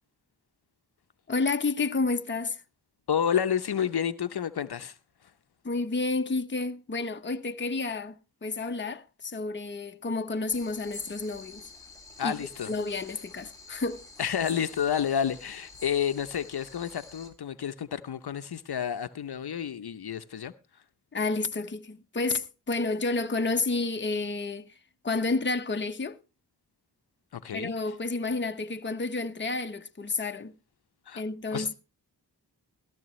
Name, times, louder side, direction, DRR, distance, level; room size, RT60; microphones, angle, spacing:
voice 1, 1.3-2.6 5.6-11.7 12.2-12.4 12.7-14.1 21.1-24.8 25.0-26.2 27.5-30.5 31.1-31.7, left 3 dB, 25° left, 0.8 m, -30 dB
voice 2, 3.1-5.0 12.2-12.7 14.2-20.5 27.3-27.7 31.1-31.2 31.5-31.7, left 8 dB, 65° left, 0.7 m, -30 dB
sound 1, 10.5-17.3, left 2 dB, 10° left, 3.3 m, -48 dB
15.0 x 13.0 x 3.1 m
cardioid pair, 50°, 41 cm